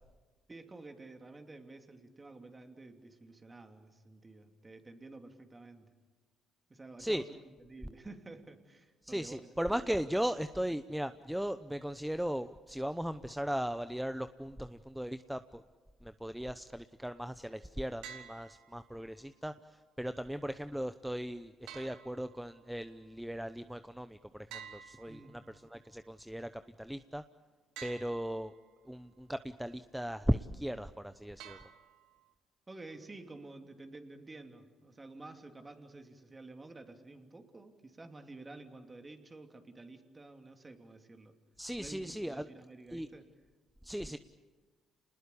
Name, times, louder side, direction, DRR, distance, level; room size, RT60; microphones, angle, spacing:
voice 1, 0.5-5.9 6.7-7.3 7.7-9.5 25.1-25.4 32.7-41.4 41.8-43.3 44.0-44.2, right 2 dB, 25° right, 6 dB, 3.0 m, -51 dB
voice 2, 9.0-15.6 16.0-25.2 25.7-27.2 27.8-28.5 28.8-31.6 41.6-42.4 42.9-43.1 43.8-44.2, equal, 5° right, 11 dB, 0.8 m, -37 dB
sound 1, 18.0-19.0 21.7-22.8 24.5-25.7 27.8-28.7 31.4-32.3, right 8 dB, 80° right, 1.6 m, -51 dB
28.0 x 20.0 x 8.5 m, 1.3 s
supercardioid pair, 60°, 0 cm